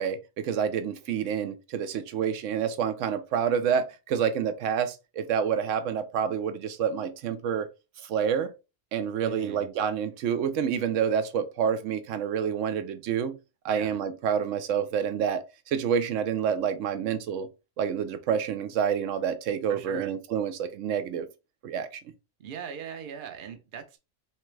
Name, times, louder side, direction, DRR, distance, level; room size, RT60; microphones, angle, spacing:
voice 1, 0.0-7.7 8.0-8.5 8.9-13.4 13.6-15.4 15.7-17.5 17.8-21.3 21.6-22.0, right 7 dB, 75° right, 1.0 m, -28 dB
voice 2, 9.2-9.6 13.7-13.9 19.7-20.1 22.4-24.0, right 7 dB, 50° right, 0.7 m, -40 dB
3.4 x 3.3 x 3.1 m
omnidirectional pair, 1.3 m